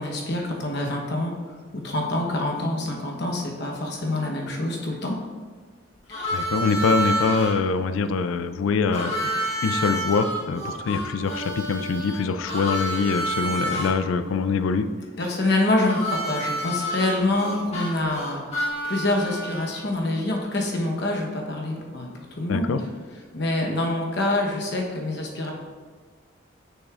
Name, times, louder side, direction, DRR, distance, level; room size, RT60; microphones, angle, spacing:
voice 1, 0.0-5.2 6.1-6.5 15.1-18.4 18.8-22.1 22.4-22.7 23.3-25.5, left 2 dB, 60° left, 0 dB, 1.0 m, -26 dB
Harmonica, 6.1-7.5 8.9-13.9 15.9-19.8, right 1 dB, 30° left, 1.3 m, -29 dB
voice 2, 6.3-9.1 9.6-14.9 22.5-22.8, left 4 dB, 85° left, 11 dB, 0.4 m, -24 dB
6.4 x 6.3 x 2.4 m, 1.5 s
head